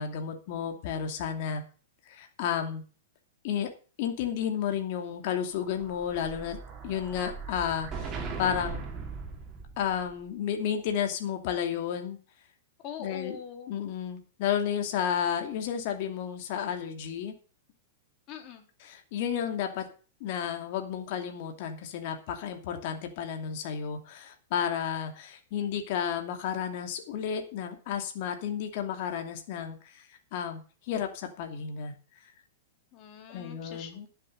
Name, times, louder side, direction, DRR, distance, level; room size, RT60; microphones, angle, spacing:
voice 1, 0.0-1.6 2.1-2.8 3.4-3.7 4.0-6.6 6.8-8.8 9.8-12.2 13.0-13.4 13.7-17.3 18.8-19.9 20.2-30.6 30.9-31.9 33.3-34.1, left 8 dB, 55° left, 5 dB, 2.6 m, -32 dB
Explosion, 5.5-10.1, right 4 dB, 25° right, 3.6 m, -39 dB
voice 2, 12.8-13.7 18.3-18.6 32.9-34.1, left 7 dB, 40° left, 4 dB, 3.5 m, -43 dB
12.0 x 7.7 x 6.5 m, 0.37 s
hypercardioid pair, 130°, 0 cm